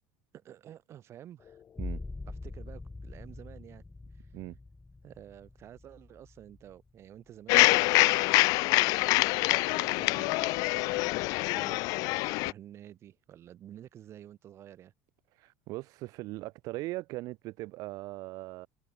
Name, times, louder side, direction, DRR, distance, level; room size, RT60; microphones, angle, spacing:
voice 1, 0.3-1.6 2.3-3.8 4.1-4.3 5.0-8.3 9.6-14.9, right 11 dB, 40° right, 4.3 m, -50 dB
sound 1, 1.4-11.6, left 8 dB, 30° left, 6.7 m, -67 dB
sound 2, 1.7-7.2 7.7-8.3, left 3 dB, 10° left, 1.0 m, -44 dB
sound 3, 7.5-12.5, left 24 dB, 60° left, 0.5 m, -25 dB
voice 2, 15.3-18.7, right 20 dB, 55° right, 2.9 m, -39 dB
supercardioid pair, 125°, 7 cm